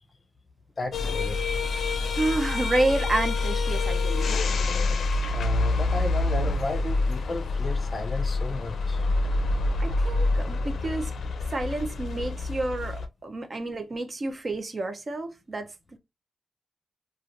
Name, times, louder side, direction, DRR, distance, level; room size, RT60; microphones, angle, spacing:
voice 1, 0.8-1.4 5.3-9.1, left 2 dB, 35° left, 0.6 m, -34 dB
sound 1, 0.9-13.1, left 3 dB, 80° left, 0.5 m, -27 dB
voice 2, 2.2-4.4 9.8-11.1 11.5-15.7, right 2 dB, 40° right, 0.5 m, -29 dB
3.2 x 2.4 x 2.5 m
wide cardioid pair, 100°, 0 cm